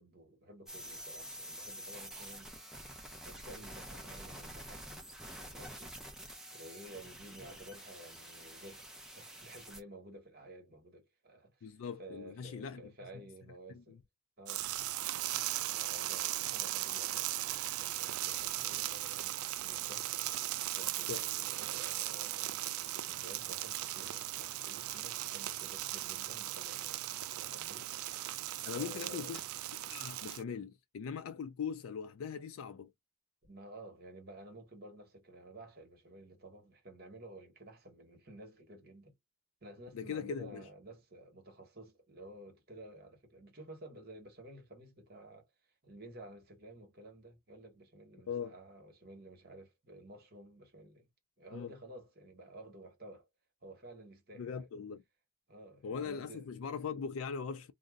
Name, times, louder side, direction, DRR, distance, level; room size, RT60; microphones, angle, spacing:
voice 1, 0.0-2.5 3.2-5.0 5.4-6.0 6.5-14.0 14.4-14.7 15.7-20.1 20.6-27.9 28.7-29.4 33.4-39.1 39.6-45.5 45.8-51.1 51.4-53.3 53.6-54.7 55.5-56.5, right 1 dB, 45° right, 1.2 m, -53 dB
sound 1, 0.7-9.8, right 1 dB, 5° right, 0.5 m, -48 dB
voice 2, 11.6-12.8 13.7-14.0 21.1-21.3 28.7-29.4 29.9-32.9 39.9-40.7 48.3-48.6 51.5-51.7 54.4-55.0 55.8-57.7, left 6 dB, 75° left, 0.4 m, -40 dB
sound 2, 14.5-30.4, right 14 dB, 85° right, 0.3 m, -38 dB
2.6 x 2.0 x 3.5 m
head